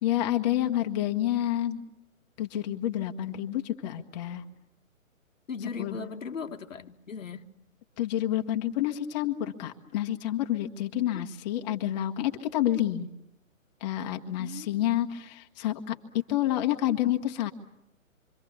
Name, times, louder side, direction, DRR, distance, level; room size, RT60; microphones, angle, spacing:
voice 1, 0.0-1.8 2.4-4.4 5.8-6.0 8.0-13.1 13.8-17.5, left 12 dB, 30° left, 1.5 m, -29 dB
voice 2, 5.5-7.5 11.1-11.3 14.4-14.8, left 5 dB, 70° left, 1.7 m, -38 dB
27.0 x 25.0 x 7.1 m
figure-of-eight pair, 135°, 40 cm